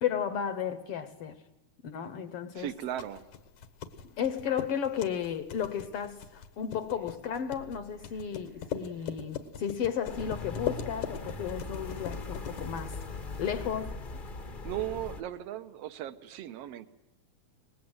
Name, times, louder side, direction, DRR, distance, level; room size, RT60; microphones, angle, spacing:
voice 1, 0.0-1.4 1.8-2.7 4.0-13.0 13.4-14.0, left 8 dB, 65° left, 1.6 m, -34 dB
voice 2, 2.6-3.2 14.6-16.9, right 12 dB, 65° right, 1.8 m, -37 dB
sound 1, 2.7-13.7, left 8 dB, 85° left, 2.9 m, -41 dB
sound 2, 10.0-15.2, left 3 dB, 40° left, 0.7 m, -40 dB
25.5 x 20.0 x 7.9 m
omnidirectional pair, 3.4 m